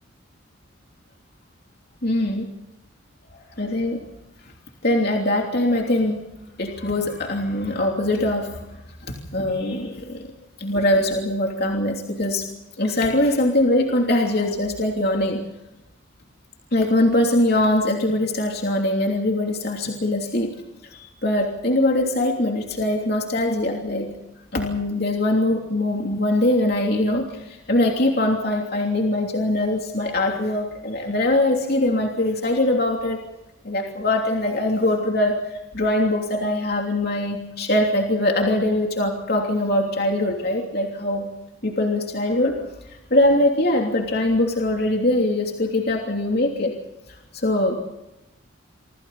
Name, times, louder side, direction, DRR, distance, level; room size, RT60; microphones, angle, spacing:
voice 1, 2.0-2.5 3.3-4.0 4.8-6.2 6.6-8.6 9.3-10.3 10.6-12.5 12.8-15.4 16.7-20.5 20.9-24.1 24.5-33.2 33.6-41.3 41.6-42.6 42.9-46.8 47.3-47.9, left 1 dB, 50° left, 1 dB, 3.1 m, -22 dB
27.5 x 26.0 x 4.2 m, 0.93 s
head